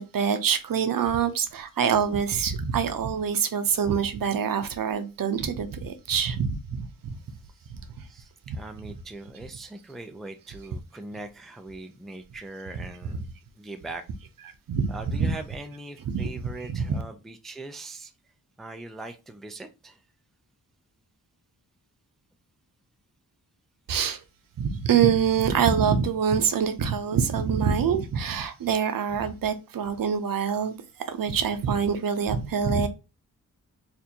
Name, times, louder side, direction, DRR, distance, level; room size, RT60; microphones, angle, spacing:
voice 1, 0.0-7.2 14.7-14.9 15.2-15.3 16.1-16.3 16.7-17.0 23.9-24.2 24.6-30.8 31.1-32.9, right 7 dB, 70° right, 0.6 m, -25 dB
voice 2, 8.1-13.3 13.6-14.0 14.9-18.1 18.6-20.0, right 2 dB, ahead, 0.3 m, -41 dB
4.3 x 2.6 x 2.7 m
wide cardioid pair, 160°, 35 cm